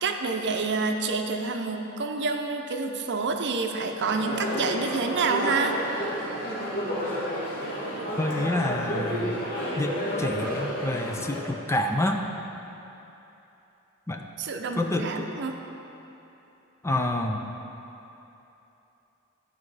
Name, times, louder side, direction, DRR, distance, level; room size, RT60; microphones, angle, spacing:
voice 1, 0.0-6.1 14.4-15.6, right 4 dB, 55° right, 4 dB, 0.6 m, -28 dB
sound 1, 4.0-11.4, equal, 45° left, 2.0 m, -31 dB
voice 2, 8.2-9.4 9.8-12.2 14.1-14.2 14.7-15.3 16.8-17.4, left 1 dB, 15° left, 3 dB, 0.4 m, -28 dB
12.5 x 4.9 x 4.9 m, 3.0 s
head